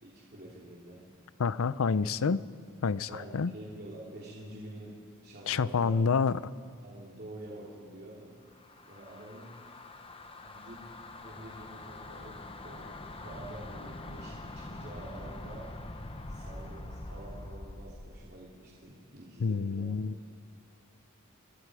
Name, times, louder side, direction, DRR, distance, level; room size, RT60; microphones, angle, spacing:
voice 1, 0.0-1.0 3.1-4.9 5.2-6.1 6.8-8.3 8.9-9.5 10.4-12.4 12.6-15.7 16.3-19.9, right 1 dB, 45° right, -5 dB, 3.1 m, -47 dB
voice 2, 1.4-2.4 2.8-3.1 3.3-3.5 5.5-6.4 19.4-20.1, left 5 dB, 65° left, 17 dB, 0.5 m, -27 dB
sound 1, 8.5-18.2, left 2 dB, 25° left, 1.0 m, -44 dB
28.5 x 21.5 x 4.9 m, 2.3 s
head